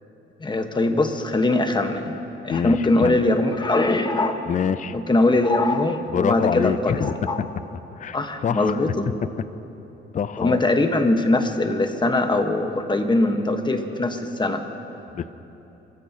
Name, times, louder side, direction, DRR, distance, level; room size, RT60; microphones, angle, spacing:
voice 1, 0.4-4.4 4.9-7.4 8.1-9.1 10.4-14.6, left 2 dB, 25° left, 6 dB, 1.2 m, -21 dB
voice 2, 2.5-3.2 4.5-5.0 6.1-7.5 7.9-8.9 9.2-9.3 10.1-10.6 15.1-15.3, left 7 dB, 40° left, 14 dB, 0.5 m, -26 dB
24.0 x 14.5 x 2.8 m, 3.0 s
cardioid pair, 90°, 20 cm